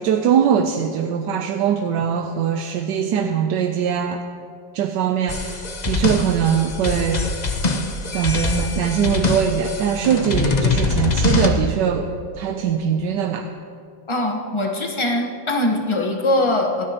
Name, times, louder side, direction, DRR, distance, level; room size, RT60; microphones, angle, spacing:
voice 1, 0.0-4.2 4.7-7.2 8.1-13.5, right 8 dB, 75° right, 5 dB, 1.2 m, -21 dB
sound 1, 5.3-11.5, left 3 dB, 75° left, 0.4 m, -23 dB
Marimba xylophone, 8.1-9.9, left 4 dB, 20° right, 3.3 m, -38 dB
voice 2, 14.1-16.8, left 1 dB, 20° left, 2 dB, 0.8 m, -22 dB
27.5 x 9.8 x 2.9 m, 2.5 s
omnidirectional pair, 2.1 m